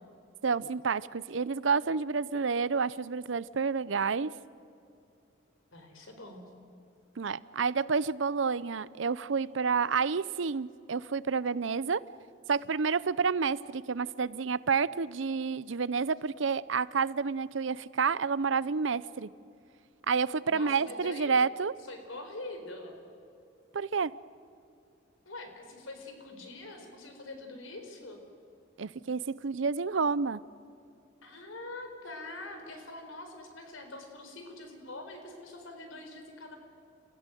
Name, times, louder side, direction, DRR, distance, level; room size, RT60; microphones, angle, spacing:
voice 1, 0.4-4.3 7.2-12.0 12.5-19.3 20.1-21.7 23.7-24.1 28.8-30.4, right 5 dB, 75° right, 19 dB, 0.6 m, -29 dB
voice 2, 5.7-6.5 20.5-21.3 21.9-23.0 25.3-28.2 31.2-36.6, left 2 dB, 90° left, 5 dB, 4.4 m, -44 dB
29.5 x 15.5 x 9.2 m, 2.6 s
head